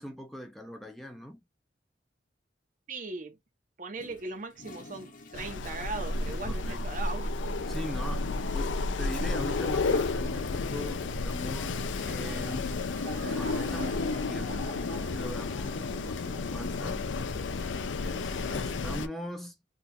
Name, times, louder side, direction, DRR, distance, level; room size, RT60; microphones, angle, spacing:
voice 1, 0.0-1.4 6.5-6.9 7.7-12.7 13.1-17.1 17.9-19.6, equal, ahead, 0.6 m, -41 dB
voice 2, 2.9-3.4 3.8-7.3, right 3 dB, 45° right, 0.8 m, -39 dB
Toilet flush, 3.9-16.7, left 3 dB, 45° left, 0.7 m, -55 dB
Wind, 5.3-19.1, left 3 dB, 80° left, 0.5 m, -32 dB
sound 1, 12.0-17.0 17.3-17.6 18.1-18.2, right 4 dB, 80° right, 1.6 m, -47 dB
3.8 x 2.4 x 2.6 m
head